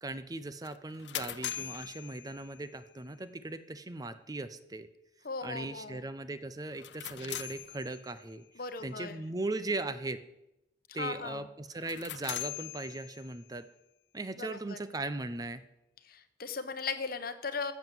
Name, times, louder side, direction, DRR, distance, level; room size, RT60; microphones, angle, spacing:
voice 1, 0.0-4.9 5.4-8.4 8.8-10.2 10.9-13.7 14.1-15.6, right 2 dB, 20° right, 12 dB, 0.6 m, -38 dB
sound 1, 0.6-2.9 6.7-8.3 11.7-13.5, left 12 dB, 75° left, 0.6 m, -41 dB
voice 2, 5.2-6.0 8.5-9.2 10.9-11.4 14.4-14.8 16.0-17.7, left 4 dB, 55° left, 10 dB, 1.0 m, -38 dB
14.0 x 7.2 x 7.5 m, 0.89 s
head